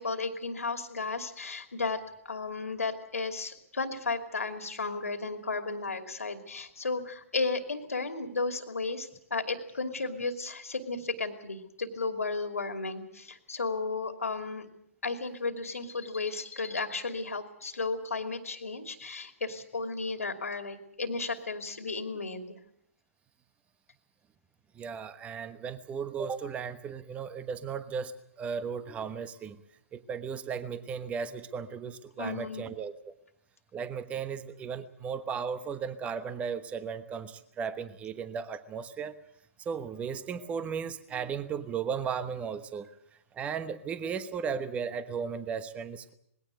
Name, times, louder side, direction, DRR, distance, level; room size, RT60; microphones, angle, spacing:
voice 1, 0.0-14.7 15.0-22.6 32.2-32.7, left 3 dB, 85° left, 7 dB, 2.7 m, -34 dB
voice 2, 24.7-29.6 29.9-33.1 33.7-39.2 39.6-42.9 43.3-46.1, right 6 dB, 15° right, 13 dB, 1.1 m, -36 dB
20.5 x 17.0 x 8.0 m, 0.73 s
hypercardioid pair, 130°, 8 cm